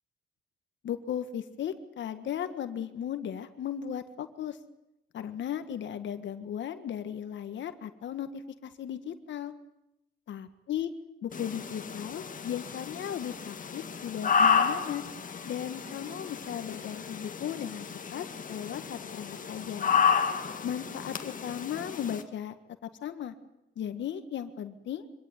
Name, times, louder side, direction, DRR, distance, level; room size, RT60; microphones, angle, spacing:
voice 1, 0.8-4.6 5.1-9.5 10.3-10.9 11.2-15.0 15.5-19.9 20.6-22.5 22.8-23.3 23.8-25.1, left 9 dB, 65° left, 10 dB, 1.8 m, -36 dB
sound 1, 11.3-22.2, left 6 dB, 40° left, 1.9 m, -31 dB
24.5 x 17.5 x 9.6 m, 0.90 s
cardioid pair, 90°, 20 cm